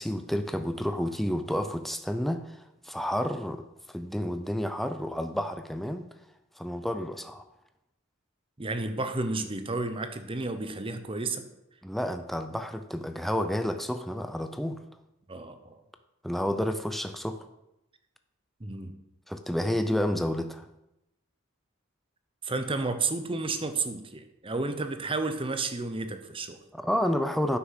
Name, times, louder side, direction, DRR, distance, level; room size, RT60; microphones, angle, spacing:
voice 1, 0.0-3.6 3.9-6.1 6.6-7.4 11.8-14.8 16.2-17.5 19.3-20.7 26.7-27.6, equal, ahead, 8 dB, 0.5 m, -30 dB
voice 2, 8.6-11.4 15.3-15.8 18.6-19.0 22.4-26.6, right 3 dB, 25° right, 8 dB, 0.8 m, -32 dB
9.6 x 6.1 x 5.8 m, 0.90 s
head